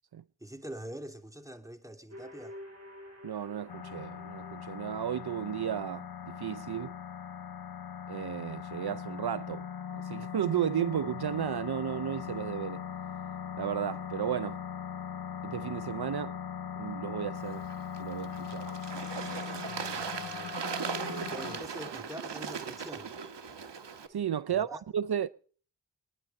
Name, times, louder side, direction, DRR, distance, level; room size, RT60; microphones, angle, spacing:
voice 1, 0.4-2.6 19.6-20.6 21.3-23.1 24.5-24.8, right 1 dB, 10° right, 2.8 m, -45 dB
sound 1, 2.1-6.0, equal, 40° right, 6.4 m, -50 dB
voice 2, 3.2-6.9 8.1-9.7 9.9-12.9 13.6-14.6 15.4-16.4 16.8-17.7 18.0-18.7 19.1-19.6 21.0-21.3 24.1-25.3, right 9 dB, 65° right, 0.6 m, -34 dB
sound 2, 3.7-21.6, left 8 dB, 60° left, 0.8 m, -40 dB
Bird / Water, 17.4-24.1, right 6 dB, 90° right, 1.6 m, -39 dB
24.0 x 10.0 x 5.4 m
cardioid pair, 45°, 41 cm